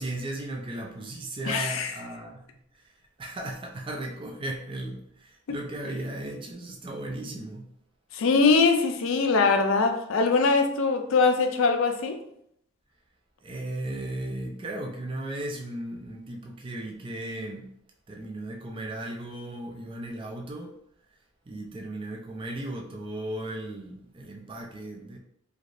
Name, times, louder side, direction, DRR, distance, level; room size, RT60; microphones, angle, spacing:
voice 1, 0.0-2.5 2.7-7.7 13.4-17.7 18.1-20.7 21.5-25.2, right 1 dB, 25° right, 0.3 m, -36 dB
voice 2, 1.5-1.9 5.5-5.6 8.1-12.2, left 4 dB, 65° left, 0.4 m, -22 dB
3.3 x 2.4 x 2.5 m
head